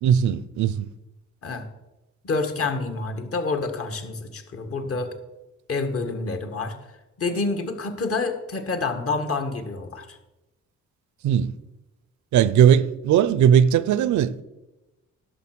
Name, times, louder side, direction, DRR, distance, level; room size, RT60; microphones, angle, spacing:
voice 1, 0.0-0.9 11.2-11.5 12.3-14.4, right 9 dB, 75° right, 0.6 m, -18 dB
voice 2, 2.2-5.1 5.7-6.7 7.2-10.2, left 3 dB, 50° left, 1.7 m, -28 dB
11.0 x 6.8 x 6.1 m
cardioid pair, 90°, 30 cm